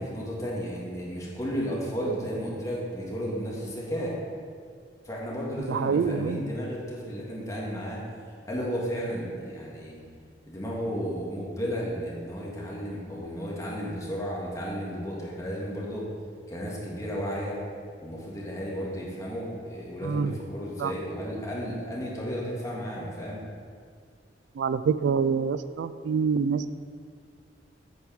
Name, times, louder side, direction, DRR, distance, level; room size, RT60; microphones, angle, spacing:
voice 1, 0.0-4.2 5.1-8.0 8.5-10.0 10.5-16.1 16.5-17.6 18.0-23.4, equal, 20° left, -4 dB, 1.7 m, -33 dB
voice 2, 5.6-6.4 20.0-20.3 20.8-20.9 24.5-26.7, right 6 dB, 80° right, 13 dB, 0.3 m, -26 dB
8.3 x 4.8 x 6.2 m, 2.1 s
head